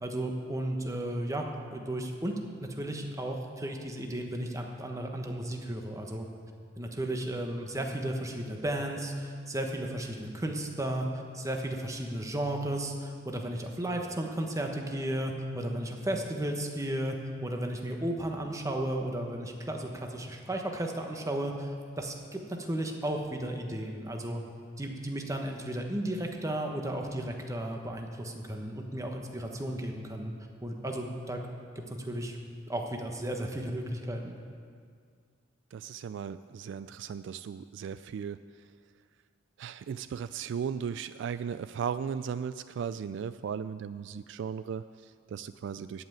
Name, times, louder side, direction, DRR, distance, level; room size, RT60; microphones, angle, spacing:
voice 1, 0.0-2.4 2.7-6.3 6.8-11.1 11.3-24.4 24.8-30.3 30.6-31.4 31.7-32.4 32.7-34.4, right 1 dB, 15° right, 2 dB, 1.2 m, -34 dB
voice 2, 35.7-38.4 39.6-46.0, right 7 dB, 70° right, 13 dB, 0.3 m, -36 dB
14.5 x 5.6 x 9.0 m, 2.1 s
head